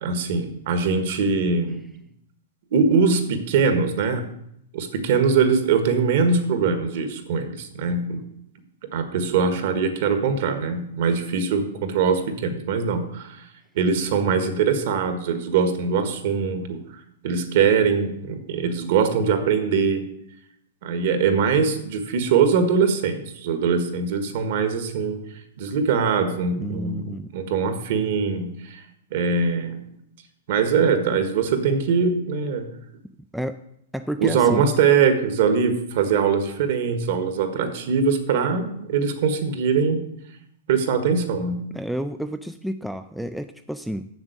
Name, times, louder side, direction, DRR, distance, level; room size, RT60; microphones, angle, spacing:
voice 1, 0.0-1.8 2.7-4.2 4.7-8.2 8.9-13.5 13.8-16.8 17.2-20.0 20.8-25.2 25.6-28.8 29.1-29.8 30.5-32.7 34.2-40.0 40.7-41.6, right 5 dB, 50° right, 8 dB, 1.6 m, -22 dB
voice 2, 26.5-27.3 33.3-33.6 33.9-34.7 41.7-44.1, equal, ahead, 9 dB, 0.3 m, -30 dB
7.3 x 7.3 x 8.1 m, 0.74 s
supercardioid pair, 165°, 0 cm